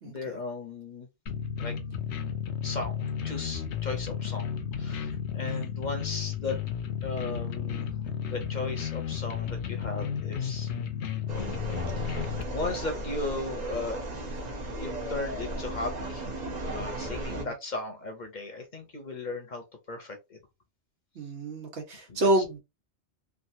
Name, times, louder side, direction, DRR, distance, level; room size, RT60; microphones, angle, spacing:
voice 1, 0.0-1.1 1.6-1.8 2.6-6.6 7.0-10.7 11.9-14.0 14.8-16.3 16.6-20.4 22.1-22.4, left 3 dB, 45° left, 0.7 m, -37 dB
sound 1, 1.3-12.4, left 8 dB, 75° left, 0.9 m, -33 dB
sound 2, 11.3-17.4, right 1 dB, 40° right, 0.9 m, -35 dB
voice 2, 21.2-22.6, right 1 dB, 75° right, 1.3 m, -28 dB
3.3 x 2.4 x 2.7 m
omnidirectional pair, 1.2 m